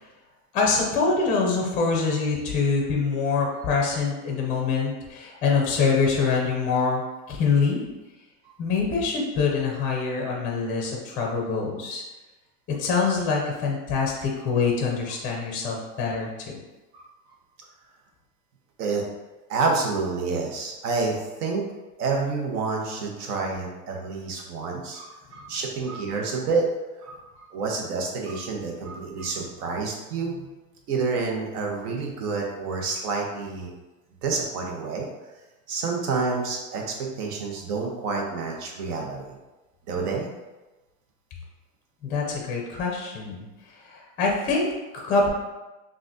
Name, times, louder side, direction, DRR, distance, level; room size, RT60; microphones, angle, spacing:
voice 1, 0.5-7.0 7.3-7.8 8.6-12.0 12.8-16.6 42.0-43.4 43.8-45.3, left 4 dB, 20° left, -1 dB, 0.4 m, -25 dB
voice 2, 19.5-21.6 22.0-26.7 27.0-30.5 30.9-33.7 34.2-35.1 35.7-39.4 39.9-40.3, right 4 dB, 75° right, 0 dB, 1.1 m, -28 dB
5.8 x 2.5 x 2.7 m, 1.1 s
supercardioid pair, 150°, 47 cm